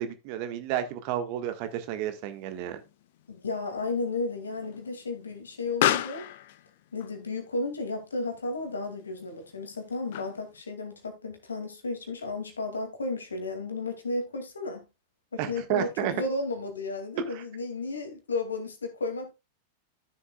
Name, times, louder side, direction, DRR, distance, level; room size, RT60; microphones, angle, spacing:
voice 1, 0.0-2.8 15.4-16.1 17.3-17.4, right 10 dB, 45° right, 1.5 m, -31 dB
Explosion, 1.6-10.6, left 13 dB, 55° left, 0.6 m, -36 dB
voice 2, 3.3-6.3 6.9-14.9 15.3-19.3, left 3 dB, 75° left, 2.3 m, -33 dB
13.0 x 7.0 x 2.3 m
figure-of-eight pair, 90°, 0 cm